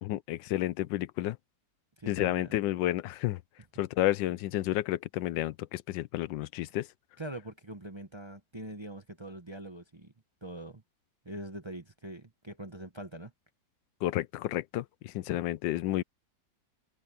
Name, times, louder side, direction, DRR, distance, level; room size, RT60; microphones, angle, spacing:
voice 1, 0.0-1.4 2.1-3.4 3.8-6.9 14.0-16.0, left 14 dB, 90° left, 1.3 m, -31 dB
voice 2, 2.0-2.5 7.2-10.1 10.4-10.8 11.2-13.3, right 1 dB, 20° right, 0.8 m, -43 dB
open air
omnidirectional pair, 2.0 m